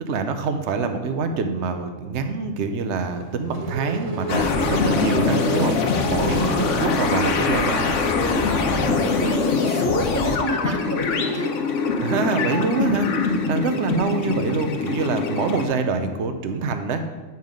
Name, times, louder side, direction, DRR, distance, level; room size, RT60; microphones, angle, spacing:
voice 1, 0.1-8.0 8.7-9.1 12.0-17.0, right 4 dB, 70° right, 7 dB, 1.0 m, -25 dB
Race car auto racing / Accelerating revving vroom, 2.9-8.2, right 3 dB, 35° right, 0.7 m, -36 dB
sound 1, 4.3-15.7, left 4 dB, 85° left, 1.2 m, -23 dB
voice 2, 6.4-6.7 7.0-11.6 13.2-13.4, left 1 dB, 20° left, 3 dB, 0.5 m, -29 dB
9.3 x 5.5 x 5.1 m, 1.3 s
omnidirectional pair, 1.2 m